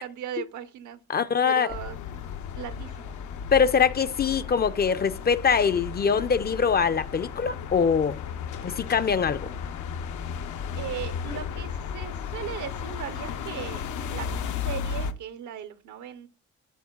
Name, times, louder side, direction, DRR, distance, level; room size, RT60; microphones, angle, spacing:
voice 1, 0.0-3.2 10.7-13.8 14.1-16.3, right 10 dB, 75° right, 0.8 m, -38 dB
voice 2, 1.1-1.7 3.5-8.2 8.6-9.5, left 6 dB, 35° left, 0.4 m, -23 dB
sound 1, 1.7-15.1, left 7 dB, 75° left, 0.7 m, -34 dB
12.0 x 4.3 x 2.3 m
cardioid pair, 90°, 30 cm